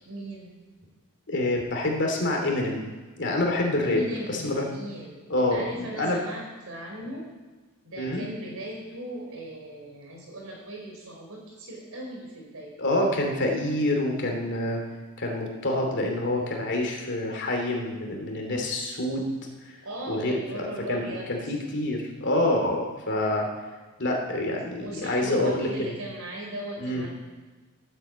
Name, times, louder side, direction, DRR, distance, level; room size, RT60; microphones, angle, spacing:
voice 1, 0.0-0.5 3.8-7.3 7.8-12.7 19.8-21.5 24.8-27.1, right 1 dB, 65° right, -1 dB, 4.7 m, -38 dB
voice 2, 1.3-2.8 3.2-4.0 4.3-4.6 5.3-6.2 8.0-8.2 12.8-14.8 15.2-19.3 20.1-23.5 24.0-25.9 26.8-27.0, left 1 dB, 55° left, 1 dB, 2.8 m, -27 dB
13.5 x 8.8 x 8.0 m, 1.3 s
head